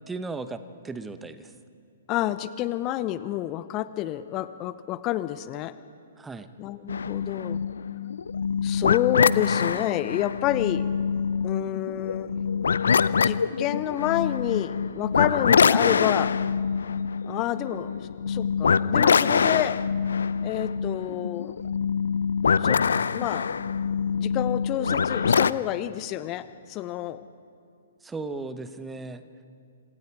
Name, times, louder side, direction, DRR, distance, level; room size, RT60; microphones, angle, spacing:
voice 1, 0.1-1.5 6.2-6.5 28.0-29.2, right 3 dB, 10° right, 11 dB, 1.0 m, -36 dB
voice 2, 2.1-5.7 6.6-7.6 8.6-10.9 11.4-12.4 13.2-16.3 17.2-19.8 20.4-21.6 22.6-23.5 24.2-27.2, left 14 dB, 30° left, 13 dB, 0.9 m, -29 dB
sound 1, 6.9-25.5, left 6 dB, 70° left, 0.6 m, -24 dB
27.5 x 26.5 x 4.8 m, 2.5 s
figure-of-eight pair, 125°, 0 cm